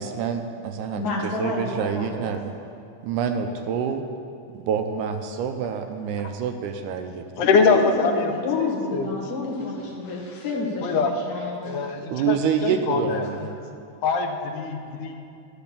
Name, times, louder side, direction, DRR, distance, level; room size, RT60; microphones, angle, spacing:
voice 1, 0.0-1.0 1.4-2.6 3.0-4.0 4.5-7.2 12.1-13.6, right 7 dB, 80° right, 6 dB, 2.0 m, -27 dB
voice 2, 0.9-2.3 7.4-11.9 12.2-12.3, left 3 dB, 40° left, -4 dB, 1.6 m, -29 dB
voice 3, 7.4-8.3 8.6-9.1 10.8-11.1 11.6-12.4 12.6-13.5 14.0-15.2, left 4 dB, 85° left, 5 dB, 2.2 m, -23 dB
10.5 x 5.8 x 6.9 m, 2.5 s
omnidirectional pair, 3.7 m